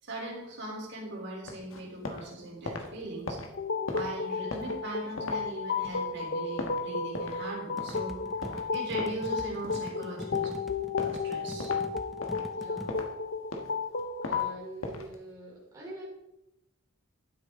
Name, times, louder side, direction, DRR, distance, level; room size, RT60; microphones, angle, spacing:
voice 1, 0.0-3.4 3.9-8.2 8.7-10.5 11.0-11.7, right 1 dB, 60° right, -3 dB, 3.5 m, -39 dB
sound 1, 1.4-2.3 2.5-7.5 7.8-8.0 8.4-10.0 10.3-10.6 11.0-11.2 11.6-11.8 12.2-13.1 13.4-14.4 14.8-15.1, left 2 dB, 80° left, 1.4 m, -39 dB
sound 2, 3.5-14.5, left 5 dB, 55° left, 0.7 m, -33 dB
sound 3, 7.8-12.9, equal, ahead, 0.5 m, -44 dB
voice 2, 12.5-13.0 14.2-16.0, right 1 dB, 15° right, -5 dB, 3.4 m, -45 dB
11.5 x 9.4 x 3.7 m, 0.91 s
head